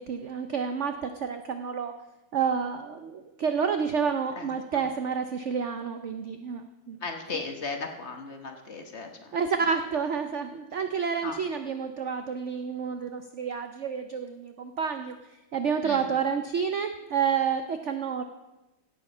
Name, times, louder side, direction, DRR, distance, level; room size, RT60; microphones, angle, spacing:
voice 1, 0.0-1.9 2.3-7.0 9.3-15.2 15.5-18.2, right 6 dB, 70° right, 7 dB, 0.6 m, -29 dB
voice 2, 4.3-4.9 7.0-9.4 11.2-11.4 15.8-16.1, left 4 dB, 40° left, 4 dB, 1.3 m, -37 dB
16.5 x 7.6 x 5.4 m, 1.0 s
omnidirectional pair, 2.0 m